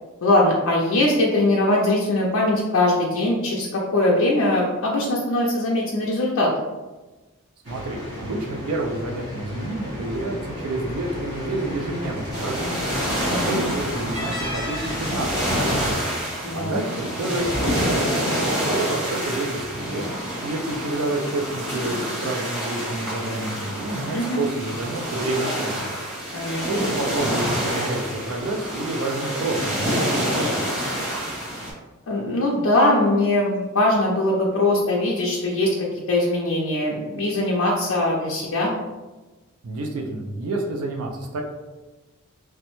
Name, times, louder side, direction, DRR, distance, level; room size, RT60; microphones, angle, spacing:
voice 1, 0.2-6.5 13.3-13.6 16.4-16.8 24.1-24.4 26.3-26.6 32.1-35.7 36.1-38.7, left 1 dB, 70° left, -4 dB, 0.4 m, -21 dB
sound 1, 7.6-15.9, left 1 dB, 55° right, 1.1 m, -33 dB
voice 2, 7.7-12.8 13.2-16.0 16.5-18.1 18.4-20.1 20.4-25.9 26.7-30.6 39.6-41.4, right 2 dB, 80° right, 2 dB, 0.4 m, -29 dB
sound 2, 12.3-31.7, equal, 20° right, 1.3 m, -27 dB
3.1 x 2.0 x 3.0 m, 1.2 s
head